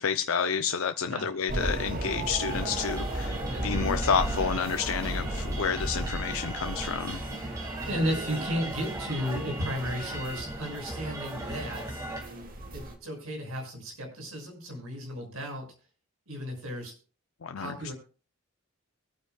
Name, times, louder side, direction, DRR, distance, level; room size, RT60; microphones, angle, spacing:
voice 1, 0.0-7.2 17.4-17.9, left 6 dB, 75° left, 8 dB, 0.6 m, -30 dB
sound 1, 1.5-13.0, right 1 dB, 40° right, 2.0 m, -35 dB
sound 2, 2.5-12.2, right 1 dB, 15° right, 2.1 m, -38 dB
voice 2, 7.8-11.8 12.7-15.7 16.3-16.9 17.5-17.9, equal, 90° right, 2 dB, 6.4 m, -34 dB
23.5 x 9.2 x 2.3 m, 0.35 s
head